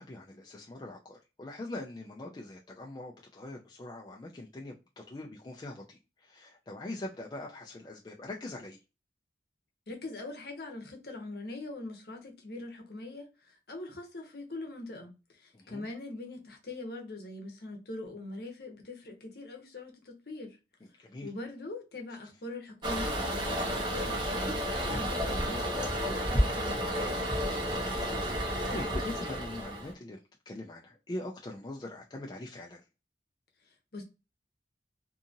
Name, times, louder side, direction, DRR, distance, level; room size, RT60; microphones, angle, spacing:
voice 1, 0.0-8.8 15.5-15.8 21.0-21.3 27.5-30.2 30.5-32.8, left 1 dB, 25° left, 0.3 m, -42 dB
voice 2, 9.9-20.6 21.2-26.9 33.6-34.0, left 2 dB, 55° left, 0.8 m, -42 dB
Toilet flush, 22.8-29.9, equal, 25° right, 0.7 m, -31 dB
2.7 x 2.5 x 2.5 m
head